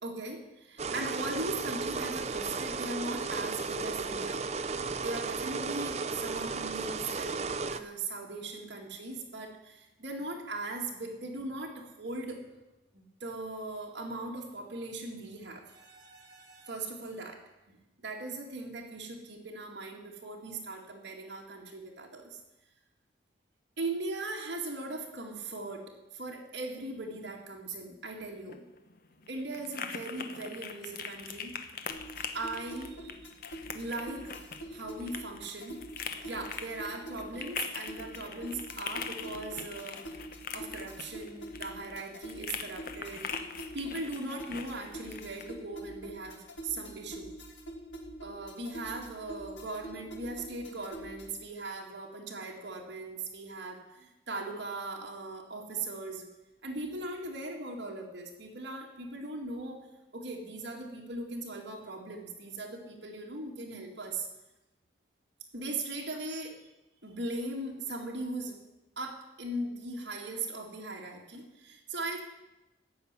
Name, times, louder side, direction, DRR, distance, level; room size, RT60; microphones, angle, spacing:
voice 1, 0.0-4.4 5.0-12.4 12.9-17.4 18.0-22.4 23.8-28.6 29.3-31.5 32.3-33.2 33.7-34.4 34.7-35.8 36.2-40.0 40.5-43.3 43.7-47.3 48.2-56.3 56.6-59.9 60.1-64.3 65.5-66.6 67.0-68.6 69.0-72.2, right 2 dB, 65° right, -2 dB, 2.2 m, -39 dB
sound 1, 0.8-7.8, right 4 dB, 35° right, 0.6 m, -34 dB
sound 2, 28.3-45.5, left 6 dB, 50° left, 0.9 m, -42 dB
sound 3, 31.9-51.5, right 1 dB, 80° left, 2.6 m, -45 dB
15.0 x 5.6 x 9.5 m, 0.99 s
head